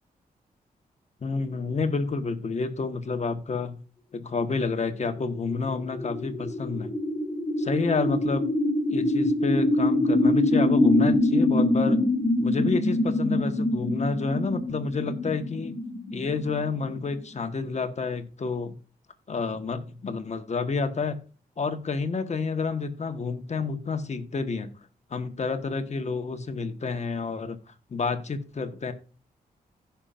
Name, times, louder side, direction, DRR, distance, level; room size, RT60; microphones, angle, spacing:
voice 1, 1.2-3.8 4.1-6.9 7.6-8.5 8.9-12.0 12.4-15.8 16.1-18.8 19.3-21.2 21.6-24.7 25.1-27.6 27.9-28.9, left 4 dB, 45° left, 7 dB, 1.3 m, -29 dB
sound 1, 5.2-17.2, left 1 dB, 30° left, 2.1 m, -25 dB
16.0 x 5.8 x 2.5 m, 0.39 s
cardioid pair, 85°, 16 cm